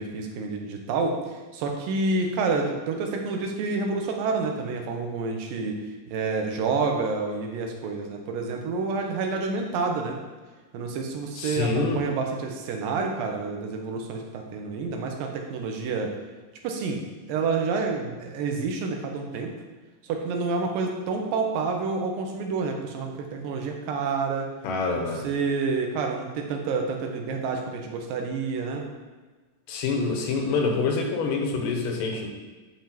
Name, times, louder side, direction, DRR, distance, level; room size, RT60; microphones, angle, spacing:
voice 1, 0.0-5.8 6.1-10.2 10.7-16.1 16.6-17.0 17.3-19.5 20.0-24.5 25.0-28.8, right 4 dB, 85° right, 2 dB, 2.5 m, -28 dB
voice 2, 11.4-12.0 24.6-25.3 29.7-32.3, left 4 dB, 80° left, 1 dB, 2.4 m, -26 dB
9.5 x 5.2 x 2.9 m, 1.3 s
omnidirectional pair, 3.9 m